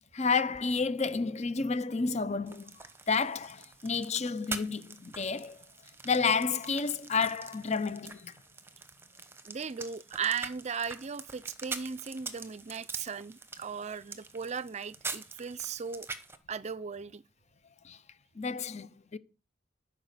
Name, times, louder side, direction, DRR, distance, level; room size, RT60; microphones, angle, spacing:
voice 1, 0.1-2.8 3.1-5.6 6.0-8.3 17.8-18.0 18.4-19.2, left 4 dB, 40° left, 0.7 m, -30 dB
sound 1, 2.5-16.4, right 4 dB, 15° right, 1.1 m, -44 dB
voice 2, 9.5-16.1 16.5-17.2, right 6 dB, 40° right, 0.5 m, -37 dB
14.5 x 5.4 x 6.7 m
head